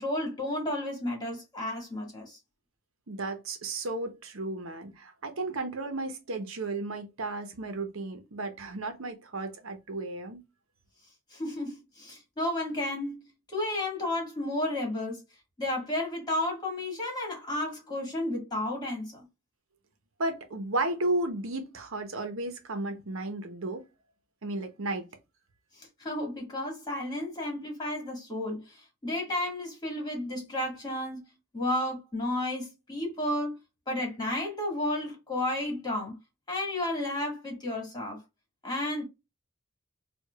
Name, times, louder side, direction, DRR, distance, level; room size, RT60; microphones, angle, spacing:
voice 1, 0.0-2.4 11.3-13.2 13.5-15.2 15.6-19.2 25.8-31.2 31.5-33.6 33.9-36.2 36.5-38.2 38.6-39.0, left 1 dB, 20° left, 1.9 m, -32 dB
voice 2, 3.1-10.4 20.2-23.8 24.4-25.1, right 2 dB, 75° right, 0.8 m, -33 dB
4.7 x 2.4 x 2.3 m
head